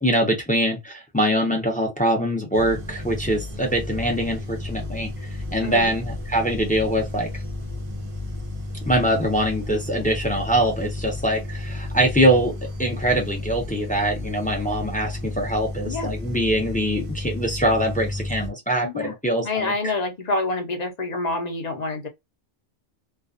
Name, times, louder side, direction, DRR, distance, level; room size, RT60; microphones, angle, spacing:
voice 1, 0.0-7.3 8.9-19.9, right 1 dB, 10° left, 0.5 m, -23 dB
sound 1, 2.5-18.5, left 2 dB, 50° right, 0.4 m, -32 dB
voice 2, 5.6-5.9 15.8-16.1 18.8-19.1 19.4-22.1, left 2 dB, 40° left, 0.7 m, -27 dB
2.4 x 2.3 x 2.4 m
omnidirectional pair, 1.2 m